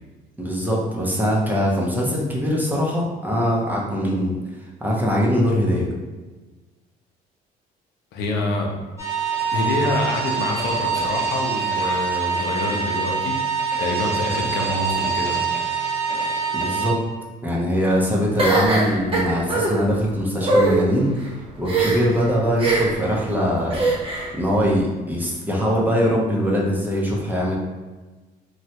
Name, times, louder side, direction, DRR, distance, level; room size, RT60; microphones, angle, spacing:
voice 1, 0.4-4.4 4.8-5.9 16.5-17.0 17.4-21.1 21.6-23.8 24.3-27.6, equal, 10° right, -3 dB, 0.7 m, -22 dB
voice 2, 8.1-8.7 9.5-13.4 13.8-15.4, left 2 dB, 80° left, 0 dB, 0.6 m, -26 dB
sound 1, 9.0-16.9, right 6 dB, 15° left, 0.9 m, -24 dB
sound 2, 18.4-19.7 20.4-20.8 21.6-22.2 22.6-23.0 23.7-24.3, right 2 dB, 35° right, 1.0 m, -20 dB
3.1 x 2.3 x 2.8 m, 1.2 s
cardioid pair, 110°, 17 cm